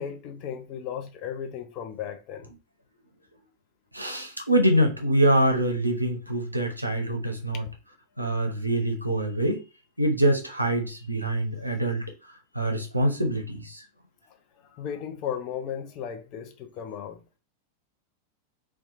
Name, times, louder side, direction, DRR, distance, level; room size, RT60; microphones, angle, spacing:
voice 1, 0.0-2.5 7.5-7.6 14.3-17.2, left 8 dB, 40° left, 0.5 m, -36 dB
voice 2, 3.9-7.6 8.2-9.6 10.0-12.0 12.5-13.8, right 1 dB, 85° right, 0.5 m, -24 dB
2.8 x 2.2 x 2.5 m
figure-of-eight pair, 90°, 0 cm